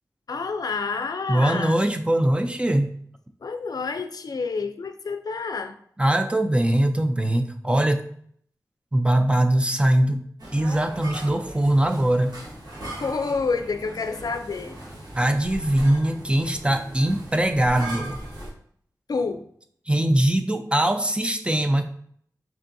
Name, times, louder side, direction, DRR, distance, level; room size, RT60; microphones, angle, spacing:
voice 1, 0.3-1.8 3.4-5.7 12.9-14.8 19.1-19.5, left 4 dB, 65° left, 8 dB, 0.4 m, -28 dB
voice 2, 1.3-2.9 6.0-8.0 8.9-10.2 10.5-12.3 15.1-18.2 19.9-21.8, right 1 dB, 15° right, 6 dB, 0.4 m, -21 dB
sound 1, 10.4-18.5, right 1 dB, 85° right, 1.3 m, -38 dB
4.5 x 3.4 x 2.6 m, 0.63 s
wide cardioid pair, 100°, 7 cm